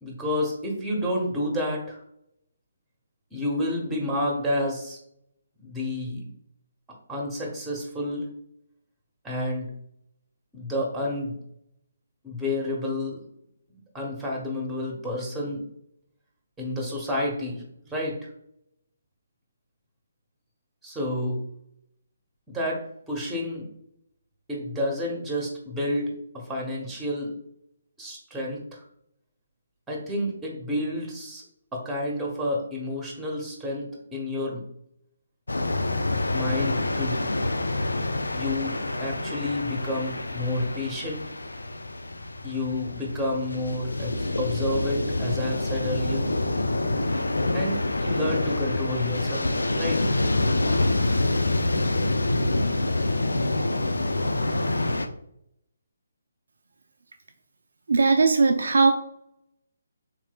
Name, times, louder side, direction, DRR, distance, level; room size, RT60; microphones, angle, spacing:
voice 1, 0.0-2.0 3.3-5.0 5.6-6.3 7.1-8.3 9.2-9.7 10.5-11.4 12.2-13.3 13.9-15.6 16.6-18.3 20.8-21.4 22.5-23.7 24.5-27.3 28.0-28.8 29.9-31.4 31.7-34.6 36.3-37.3 38.3-41.2 42.4-46.3 47.5-49.5 49.8-50.0, left 1 dB, 5° right, -1 dB, 0.8 m, -30 dB
sound 1, 35.5-55.1, left 2 dB, 75° left, 0.3 m, -26 dB
voice 2, 57.9-58.9, right 4 dB, 65° right, 5 dB, 0.3 m, -19 dB
3.5 x 3.1 x 2.2 m, 0.74 s
figure-of-eight pair, 140°, 0 cm